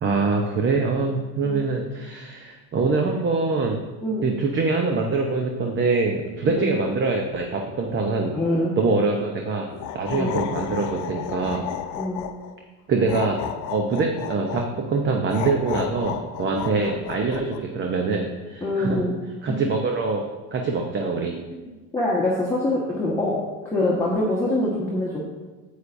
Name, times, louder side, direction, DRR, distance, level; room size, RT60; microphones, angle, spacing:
voice 1, 0.0-3.8 4.2-8.4 8.8-9.7 9.9-11.7 12.9-13.4 13.7-19.0 19.4-21.3, right 4 dB, 25° right, 2 dB, 0.8 m, -24 dB
voice 2, 8.3-8.8 10.1-10.4 12.0-12.2 18.6-19.2 21.9-23.4 23.7-25.2, left 1 dB, 5° left, -6 dB, 1.4 m, -24 dB
sound 1, 9.7-12.5 13.1-14.7 15.3-17.6, left 10 dB, 40° left, 0.7 m, -32 dB
9.4 x 8.5 x 2.6 m, 1.3 s
supercardioid pair, 120°, 48 cm